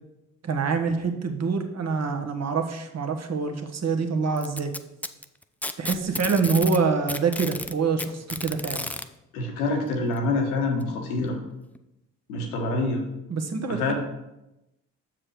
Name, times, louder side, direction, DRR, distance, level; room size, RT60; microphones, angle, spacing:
voice 1, 0.4-4.7 5.8-8.8 13.3-13.9, right 5 dB, 35° right, 6 dB, 1.3 m, -26 dB
Packing tape duct tape, 4.4-6.8 7.1-9.1 10.2-10.3 10.8-10.9 11.8-11.9, left 2 dB, 5° left, 0.3 m, -32 dB
voice 2, 9.3-11.4 12.3-13.0 13.7-13.9, left 2 dB, 75° left, 3 dB, 1.3 m, -26 dB
7.5 x 6.7 x 4.8 m, 0.91 s
figure-of-eight pair, 40°, 43 cm